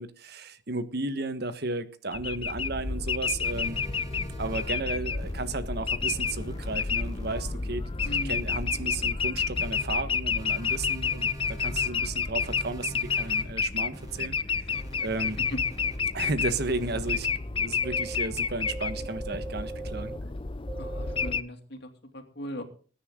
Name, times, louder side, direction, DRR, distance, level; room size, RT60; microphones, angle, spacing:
voice 1, 0.0-3.8 4.4-14.7 15.0-15.4 16.1-17.3 17.5-20.1, right 3 dB, 60° right, 11 dB, 1.5 m, -34 dB
sound 1, 2.1-21.4, left 5 dB, 30° left, 0.6 m, -30 dB
sound 2, 3.4-4.7 5.2-5.5 6.0-7.5 8.0-9.1 9.5-9.9 10.4-11.9 12.4-13.4 13.9-14.2 14.7-16.0 16.5-17.3 17.8-18.1 18.6-20.2 20.7-21.3, right 2 dB, 20° right, 4.2 m, -43 dB
Car, 3.5-18.7, equal, 5° left, 6.4 m, -48 dB
voice 2, 8.0-8.4 15.4-15.6 20.8-22.6, equal, 65° left, 6 dB, 2.7 m, -38 dB
21.0 x 10.0 x 3.9 m, 0.41 s
head